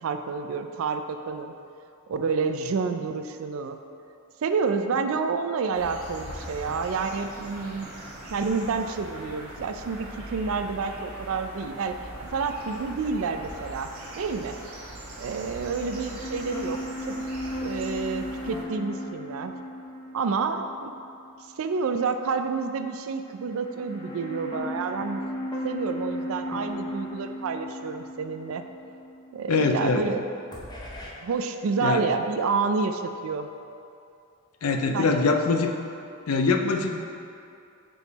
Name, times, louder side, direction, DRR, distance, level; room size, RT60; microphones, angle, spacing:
voice 1, 0.0-1.5 2.1-3.8 4.4-7.9 8.3-12.0 12.3-13.9 14.2-14.6 15.2-16.8 17.1-17.2 17.6-19.5 20.1-20.9 21.6-25.2 25.6-28.6 29.3-30.2 31.2-33.5 34.9-35.4, right 5 dB, 70° right, 7 dB, 0.3 m, -29 dB
sound 1, 5.7-18.6, right 1 dB, 85° right, 1.1 m, -41 dB
sound 2, 15.4-21.7 22.0-22.1 23.2-30.1 30.5-31.1, left 1 dB, 20° left, 0.6 m, -36 dB
voice 2, 29.5-30.0 31.8-32.0 34.6-35.7 36.3-37.1, left 4 dB, 80° left, 4 dB, 0.5 m, -23 dB
5.2 x 4.6 x 4.0 m, 2.6 s
head